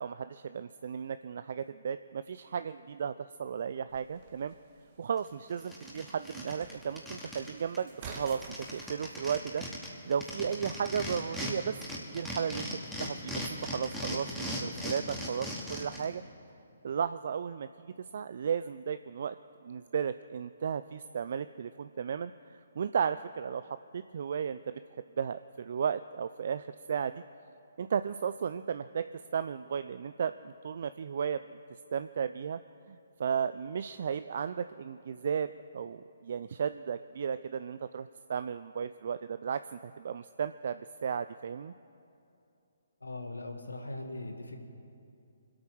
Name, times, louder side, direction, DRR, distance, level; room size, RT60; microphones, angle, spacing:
voice 1, 0.0-4.5 5.0-7.9 8.2-8.4 8.7-9.6 10.0-12.7 13.0-16.2 16.8-17.9 18.1-19.3 19.6-22.3 22.8-24.8 25.2-27.2 27.8-31.6 31.9-32.6 32.9-41.7, right 7 dB, 55° right, 12 dB, 0.4 m, -34 dB
sound 1, 3.9-8.9, right 5 dB, 40° right, 1.6 m, -50 dB
sound 2, 5.2-5.3 5.6-7.5 7.7-7.8 8.0-11.5 11.8-16.0, equal, ahead, 2.3 m, -38 dB
voice 2, 43.0-44.6, left 2 dB, 85° left, 4 dB, 1.9 m, -40 dB
24.5 x 8.7 x 6.2 m, 2.7 s
figure-of-eight pair, 135°, 0 cm